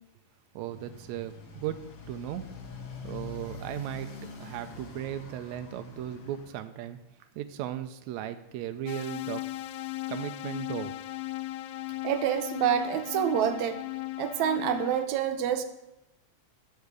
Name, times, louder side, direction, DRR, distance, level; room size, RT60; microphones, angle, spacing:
Motorcycle, 0.5-6.6, left 3 dB, 55° left, 1.5 m, -44 dB
voice 1, 0.5-2.4 3.0-7.0 7.3-9.4 10.1-10.9, right 11 dB, 90° right, 8 dB, 1.6 m, -36 dB
sound 1, 8.9-15.1, left 17 dB, 90° left, 1.6 m, -37 dB
voice 2, 12.0-13.8 14.2-15.6, right 9 dB, 70° right, 8 dB, 1.9 m, -27 dB
8.3 x 6.6 x 8.2 m, 0.90 s
omnidirectional pair, 3.9 m